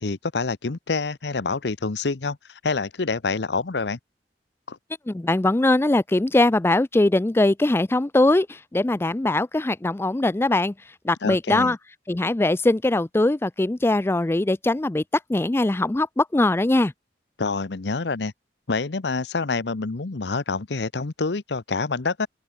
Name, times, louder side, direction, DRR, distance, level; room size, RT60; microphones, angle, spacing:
voice 1, 0.0-4.0 4.7-4.8 11.2-11.8 17.4-18.3 18.7-22.3, left 4 dB, 70° left, 0.9 m, -27 dB
voice 2, 5.1-10.7 11.0-11.8 12.1-15.0 15.3-16.9, left 2 dB, 15° left, 0.4 m, -21 dB
open air
head